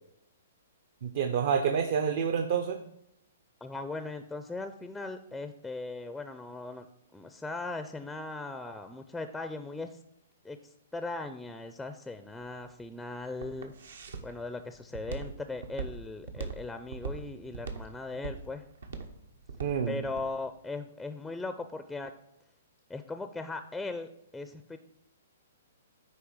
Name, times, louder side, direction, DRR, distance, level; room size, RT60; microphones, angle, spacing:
voice 1, 1.0-2.8 19.6-20.0, right 7 dB, 60° right, 6 dB, 0.7 m, -28 dB
voice 2, 3.6-6.9 7.1-10.0 10.4-10.6 10.9-13.7 14.2-18.6 19.9-22.1 22.9-24.8, left 3 dB, 5° left, 8 dB, 0.4 m, -38 dB
Walk footsteps, 12.4-20.3, right 5 dB, 80° right, 1.1 m, -40 dB
9.5 x 3.2 x 6.4 m, 0.78 s
hypercardioid pair, 140°, 0 cm